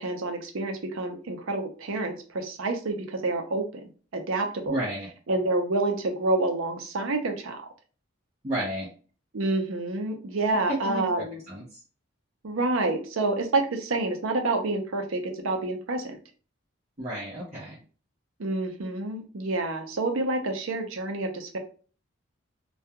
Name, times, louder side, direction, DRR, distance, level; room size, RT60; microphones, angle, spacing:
voice 1, 0.0-4.8 5.3-7.7 9.3-11.4 12.4-16.2 18.4-21.6, right 2 dB, 75° right, 5 dB, 0.6 m, -28 dB
voice 2, 4.7-5.1 8.4-8.9 10.7-11.8 17.0-17.8, right 1 dB, 35° right, -8 dB, 0.7 m, -32 dB
2.3 x 2.2 x 2.8 m, 0.38 s
head